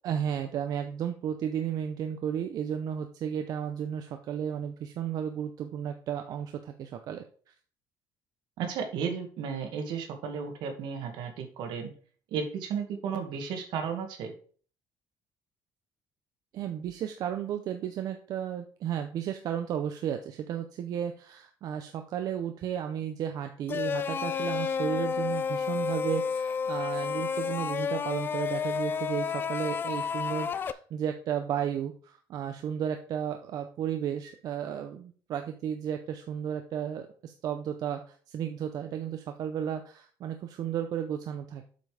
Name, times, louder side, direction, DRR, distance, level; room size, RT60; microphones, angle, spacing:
voice 1, 0.0-7.2 16.5-38.0 38.3-41.7, right 9 dB, 55° right, 6 dB, 0.7 m, -33 dB
voice 2, 8.6-11.9 12.3-14.3, right 6 dB, 80° right, 5 dB, 1.9 m, -34 dB
sound 1, 23.7-30.7, left 6 dB, 25° left, 0.4 m, -31 dB
7.7 x 5.3 x 4.9 m, 0.44 s
cardioid pair, 165°, 8 cm